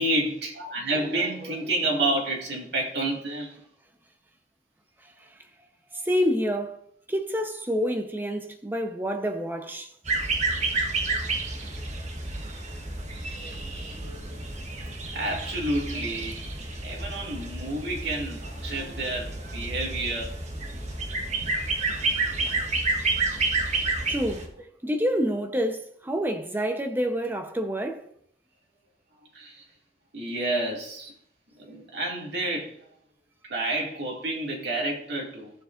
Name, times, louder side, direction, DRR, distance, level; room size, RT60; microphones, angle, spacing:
voice 1, 0.0-3.6 13.1-14.4 15.1-16.4 16.8-20.4 29.3-29.6 30.1-31.1 31.6-32.8 33.4-35.5, right 2 dB, 70° right, 2.3 m, -30 dB
voice 2, 6.0-6.8 7.1-9.9 21.8-22.1 24.1-24.5 24.8-28.1, equal, 10° right, 0.8 m, -28 dB
sound 1, 10.0-24.5, right 3 dB, 40° right, 1.2 m, -30 dB
14.0 x 7.2 x 2.6 m
head